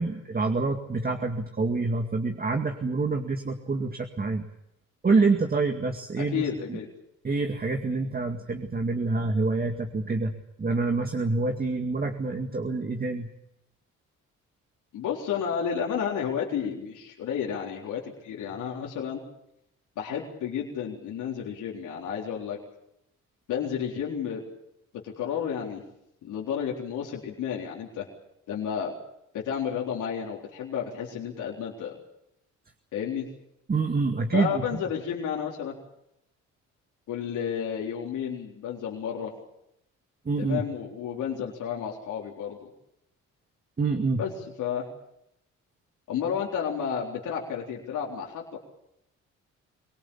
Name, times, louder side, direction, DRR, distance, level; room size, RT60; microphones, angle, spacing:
voice 1, 0.0-4.5 5.0-6.8 7.2-13.3 33.7-34.8 40.3-40.6 43.8-44.2, right 3 dB, 30° right, 3 dB, 2.2 m, -27 dB
voice 2, 6.2-6.9 14.9-19.2 20.0-22.6 23.5-24.4 24.9-25.8 26.2-28.1 28.5-28.9 29.3-32.0 32.9-33.3 34.3-35.8 37.1-39.3 40.4-42.7 44.2-44.3 44.6-44.9 46.1-48.6, left 8 dB, 80° left, -2 dB, 4.0 m, -31 dB
24.0 x 19.0 x 8.7 m, 0.80 s
cardioid pair, 90°, 30 cm